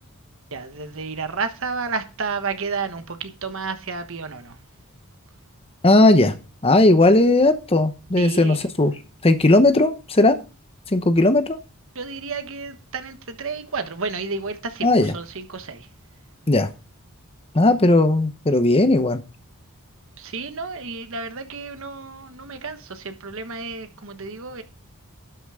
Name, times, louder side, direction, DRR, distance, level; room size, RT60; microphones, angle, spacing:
voice 1, 0.5-4.6 8.2-8.6 11.9-15.9 20.2-24.6, right 4 dB, 60° right, 1.3 m, -31 dB
voice 2, 5.8-6.3 6.6-8.9 9.2-10.4 10.9-11.6 14.8-15.1 16.5-16.7 17.5-19.2, left 2 dB, 25° left, 0.9 m, -17 dB
12.0 x 6.0 x 4.9 m
head